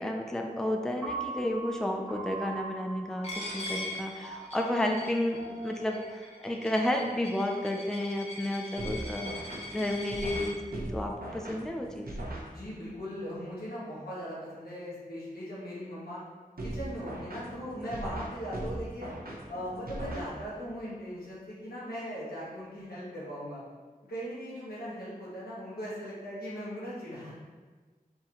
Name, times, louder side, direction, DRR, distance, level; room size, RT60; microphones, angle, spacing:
voice 1, 0.0-9.3 9.7-12.1, left 1 dB, 5° left, 2 dB, 0.4 m, -32 dB
Piano, 1.0-7.2, right 4 dB, 20° right, 1.5 m, -42 dB
Coin (dropping), 3.2-10.5, left 2 dB, 45° left, 0.9 m, -41 dB
sound 1, 8.8-13.0 16.6-20.8, right 1 dB, 75° right, 0.7 m, -40 dB
voice 2, 12.4-16.2 16.6-19.1 19.5-23.6 24.0-27.3, equal, 85° left, -8 dB, 1.4 m, -39 dB
4.1 x 3.7 x 3.0 m, 1.4 s
wide cardioid pair, 50°, 15 cm